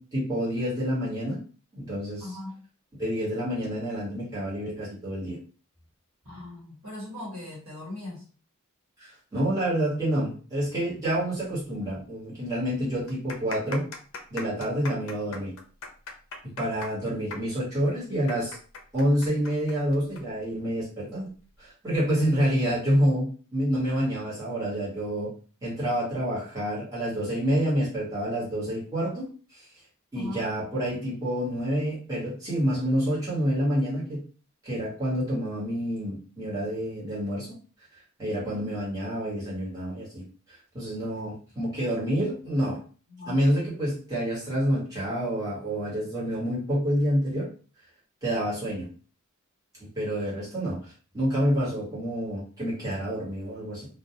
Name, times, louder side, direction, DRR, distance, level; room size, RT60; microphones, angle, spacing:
voice 1, 0.0-1.4 1.7-2.3 3.0-5.4 9.0-13.8 14.3-15.5 16.6-18.6 18.9-21.3 21.6-23.3 23.5-25.3 25.6-29.6 30.1-34.2 34.6-37.5 38.2-40.2 40.7-42.8 43.3-47.4 48.2-48.9 49.9-50.8 51.1-53.9, equal, 15° right, -9 dB, 1.1 m, -28 dB
voice 2, 2.2-2.5 6.2-8.2 30.1-30.4 38.3-38.7 43.1-43.4, left 2 dB, 65° right, -4 dB, 1.1 m, -39 dB
sound 1, 11.9-12.0 12.2-12.3 13.0-20.2 20.5-20.6 21.4-21.6, left 3 dB, 65° left, 0.5 m, -40 dB
2.3 x 2.2 x 2.8 m, 0.39 s
head